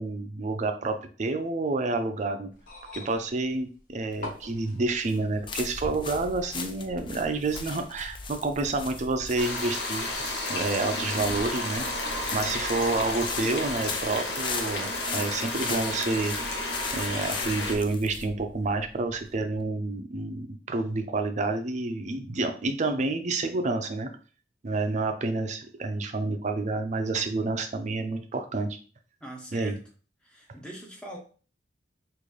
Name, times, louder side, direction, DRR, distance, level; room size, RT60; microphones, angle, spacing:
voice 1, 0.0-2.5 2.9-11.8 12.3-16.4 16.9-24.1 24.6-28.8 29.5-29.8, right 3 dB, 40° right, 6 dB, 0.5 m, -29 dB
sound 1, 2.5-5.5 6.6-6.7, left 2 dB, 50° left, 1.0 m, -44 dB
sound 2, 4.1-19.6, left 4 dB, 25° left, 0.4 m, -39 dB
sound 3, 9.4-17.7, left 2 dB, 75° left, 0.8 m, -32 dB
voice 2, 29.2-29.8 30.2-31.2, right 1 dB, 5° left, -1 dB, 0.8 m, -41 dB
3.8 x 2.5 x 3.2 m, 0.39 s
head